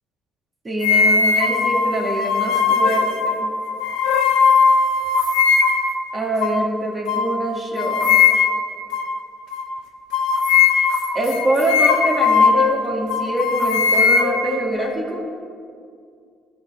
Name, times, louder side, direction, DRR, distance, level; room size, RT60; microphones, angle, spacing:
voice 1, 0.6-3.5 6.1-8.2 11.1-15.2, right 1 dB, 30° right, -2 dB, 2.4 m, -24 dB
sound 1, 0.8-5.9 6.4-6.6 7.1-7.3 7.8-8.7 8.9-9.1 9.5-9.7 10.1-12.8 13.1-14.9, left 5 dB, 75° left, 0.7 m, -18 dB
14.0 x 6.1 x 3.7 m, 2.2 s
hypercardioid pair, 60°, 0 cm